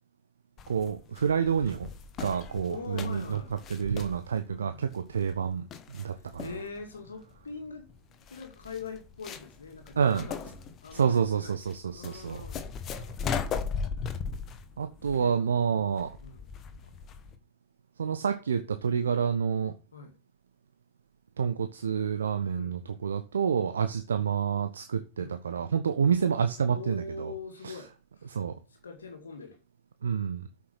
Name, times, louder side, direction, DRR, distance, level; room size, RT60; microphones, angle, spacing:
sound 1, 0.6-17.4, left 6 dB, 30° left, 1.6 m, -38 dB
voice 1, 0.7-1.9 2.2-3.4 3.7-6.5 10.0-10.3 10.9-12.5 14.8-16.1 18.0-19.7 21.4-27.3 27.6-27.8 28.3-28.6 30.0-30.5, right 7 dB, 70° right, 9 dB, 0.8 m, -28 dB
voice 2, 2.7-3.5 4.5-4.9 6.1-7.8 8.3-10.5 10.8-11.6 11.9-12.8 15.0-16.4 19.9-20.1 22.5-23.0 24.1-24.3 25.2-25.6 26.6-27.9 28.2-28.3 28.8-29.6, left 4 dB, 70° left, 4 dB, 2.1 m, -43 dB
8.0 x 6.5 x 6.3 m, 0.33 s
figure-of-eight pair, 90°, 0 cm